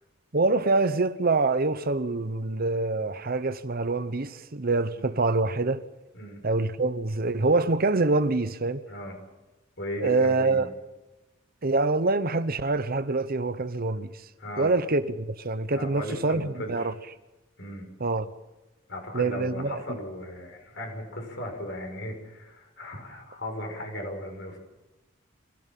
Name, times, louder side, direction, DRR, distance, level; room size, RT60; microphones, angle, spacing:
voice 1, 0.3-5.8 6.4-8.8 10.0-10.7 11.6-14.1 14.6-16.9 18.0-18.3 19.1-19.8, right 3 dB, 50° right, 1.0 m, -25 dB
voice 2, 9.8-10.7 14.4-14.7 15.7-16.9 17.6-17.9 18.9-24.6, left 1 dB, 65° left, 6.6 m, -37 dB
26.0 x 16.5 x 7.6 m
head